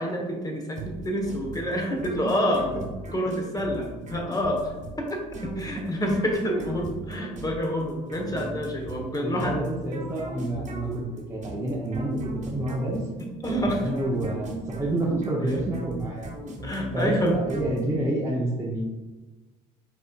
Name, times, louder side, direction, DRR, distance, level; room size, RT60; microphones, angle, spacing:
voice 1, 0.0-2.7 3.1-9.6 13.2-13.8 15.5-15.6 16.6-17.3, equal, 20° left, 1 dB, 1.1 m, -28 dB
sound 1, 0.8-18.3, right 2 dB, 40° right, 1.2 m, -38 dB
voice 2, 9.2-13.0 13.5-13.6 13.8-16.3 16.9-18.8, right 1 dB, 15° right, -4 dB, 0.8 m, -28 dB
5.1 x 3.8 x 2.4 m, 1.2 s
hypercardioid pair, 65°, 19 cm